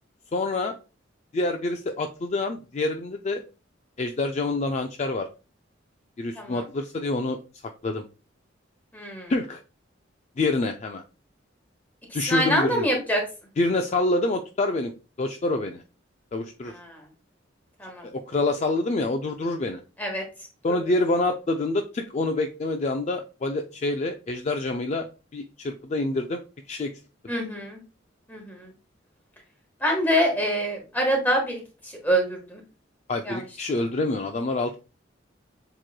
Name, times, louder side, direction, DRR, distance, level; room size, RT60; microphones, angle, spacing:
voice 1, 0.3-0.7 1.3-3.4 4.0-5.3 6.2-7.4 7.8-8.0 9.3-9.6 10.4-11.0 12.1-12.9 13.6-14.9 15.2-15.8 16.3-16.7 18.0-19.8 20.6-25.1 25.3-26.4 26.7-26.9 33.1-34.8, left 2 dB, 35° left, 5 dB, 0.3 m, -26 dB
voice 2, 8.9-9.3 12.3-13.2 16.7-17.0 17.8-18.0 20.0-20.2 27.3-27.8 28.3-28.7 29.8-32.6 33.2-33.4, equal, 10° left, 1 dB, 1.3 m, -25 dB
7.3 x 3.0 x 2.2 m, 0.33 s
head